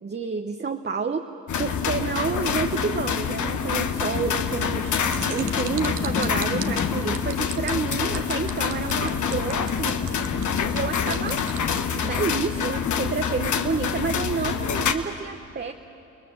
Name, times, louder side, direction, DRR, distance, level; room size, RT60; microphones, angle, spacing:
voice 1, 0.0-1.3 1.6-4.9 5.3-10.0 10.7-11.4 11.9-15.7, right 5 dB, 35° right, 5 dB, 1.1 m, -29 dB
sound 1, 1.5-14.9, left 7 dB, 70° left, 1.4 m, -26 dB
sound 2, 3.9-7.2 9.0-11.8, left 5 dB, 40° left, 1.5 m, -35 dB
sound 3, 4.9-11.8, right 10 dB, 75° right, 1.2 m, -37 dB
30.0 x 20.0 x 7.3 m, 2.8 s
cardioid pair, 65°, 31 cm